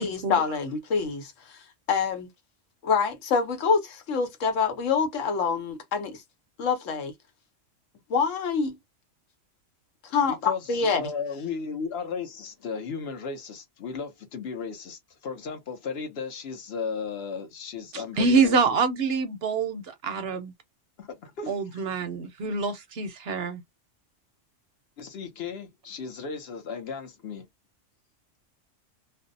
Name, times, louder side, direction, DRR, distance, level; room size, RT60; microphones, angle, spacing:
voice 1, 0.0-1.6 1.9-2.3 2.8-6.2 6.6-7.1 8.1-8.7 10.0-11.0, left 5 dB, 85° left, 1.1 m, -26 dB
voice 2, 10.3-18.8 21.0-21.8 25.0-27.5, left 5 dB, 60° left, 0.9 m, -35 dB
voice 3, 18.2-20.5 21.5-23.6, right 4 dB, 65° right, 0.7 m, -25 dB
2.6 x 2.0 x 2.5 m
omnidirectional pair, 1.3 m